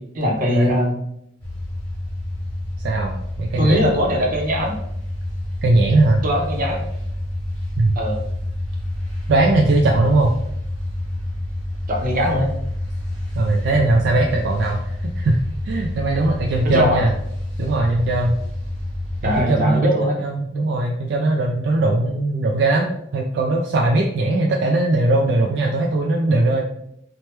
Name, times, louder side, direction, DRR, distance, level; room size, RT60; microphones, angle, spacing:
voice 1, 0.1-1.0 3.6-4.8 6.2-6.8 8.0-8.2 11.9-12.5 16.6-17.0 19.2-20.2, equal, 50° right, 0 dB, 0.7 m, -20 dB
sound 1, 1.4-19.4, left 1 dB, 5° left, 1.3 m, -28 dB
voice 2, 2.8-3.8 5.6-6.2 7.8-8.0 9.3-10.3 13.4-15.4 15.6-17.1 17.6-18.4 19.2-26.6, right 2 dB, 65° right, 1 dB, 0.3 m, -19 dB
2.9 x 2.2 x 3.2 m, 0.75 s
head